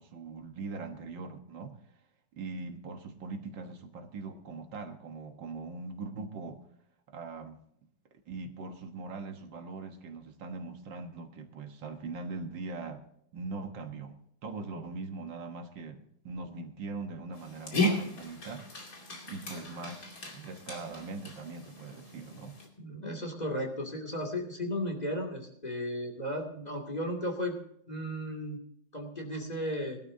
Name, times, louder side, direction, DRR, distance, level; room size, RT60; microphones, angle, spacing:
voice 1, 0.0-1.7 2.3-6.6 7.1-7.6 8.3-13.0 13.3-18.7 19.0-22.6, right 3 dB, 75° right, 5 dB, 2.0 m, -41 dB
Dog, 17.3-22.7, left 1 dB, 50° left, 3.0 m, -35 dB
voice 2, 22.8-27.6 27.9-28.6 28.9-30.0, equal, 20° left, 2 dB, 2.5 m, -35 dB
19.5 x 12.5 x 2.7 m, 0.71 s
omnidirectional pair, 2.0 m